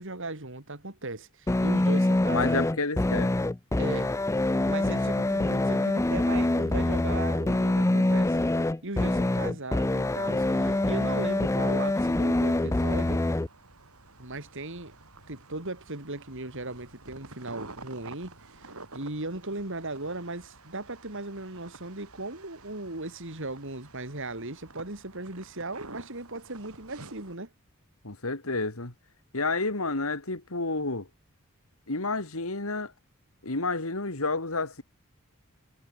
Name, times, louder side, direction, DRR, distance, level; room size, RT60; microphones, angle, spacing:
voice 1, 0.0-2.6 3.8-4.1 4.6-8.4 8.8-13.2 14.2-15.0 15.3-27.5, right 2 dB, 60° right, 3.8 m, -37 dB
sound 1, 1.5-13.5, left 2 dB, 15° left, 0.5 m, -25 dB
voice 2, 2.3-3.3 28.0-28.9 29.3-31.1 31.9-32.9 33.4-34.8, left 3 dB, 70° left, 2.8 m, -30 dB
sound 2, 10.4-27.4, right 3 dB, 90° right, 6.4 m, -50 dB
head